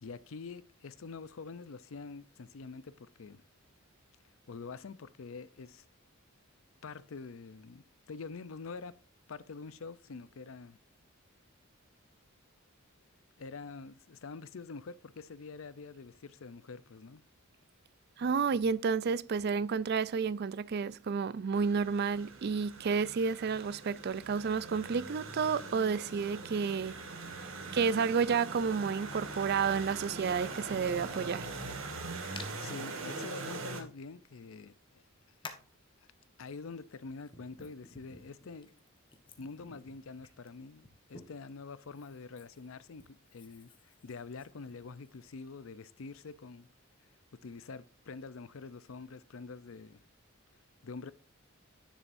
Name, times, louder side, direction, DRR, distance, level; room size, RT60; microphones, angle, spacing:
voice 1, 0.0-3.4 4.5-5.9 6.8-9.0 9.3-10.8 13.4-17.2 32.6-35.0 36.4-38.8 39.4-46.7 47.3-50.0 50.8-51.1, left 4 dB, 70° left, 0.5 m, -46 dB
voice 2, 18.2-26.9 27.7-31.5, right 5 dB, 50° right, 0.4 m, -31 dB
sound 1, 21.5-33.8, right 3 dB, 70° right, 1.7 m, -42 dB
Hands, 32.4-32.5 33.0-33.1 34.3-34.4 35.4-35.8 36.7-41.5 41.9-45.2, left 4 dB, 25° left, 1.1 m, -52 dB
10.0 x 7.2 x 2.6 m
head